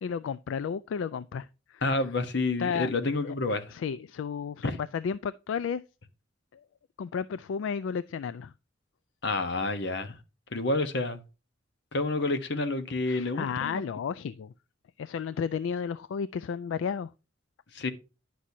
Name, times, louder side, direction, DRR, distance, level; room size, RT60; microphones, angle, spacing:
voice 1, 0.0-1.8 2.6-5.8 6.5-6.6 7.0-8.5 13.1-14.5 15.0-17.1, left 6 dB, 80° left, 0.3 m, -33 dB
voice 2, 1.8-3.7 4.6-4.8 9.2-10.2 10.5-11.2 11.9-13.8 17.7-17.9, left 2 dB, 65° left, 1.0 m, -29 dB
10.0 x 6.2 x 2.7 m
head